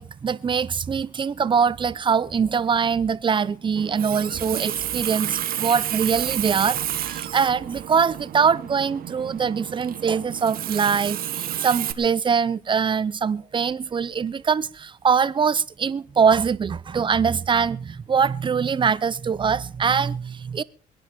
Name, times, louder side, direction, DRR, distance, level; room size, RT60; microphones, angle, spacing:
voice 1, 0.0-20.6, right 6 dB, 30° right, 0.7 m, -23 dB
Water tap faucet, 3.8-11.9, right 11 dB, 60° right, 1.3 m, -30 dB
22.5 x 10.5 x 4.4 m
cardioid pair, 110°, 17 cm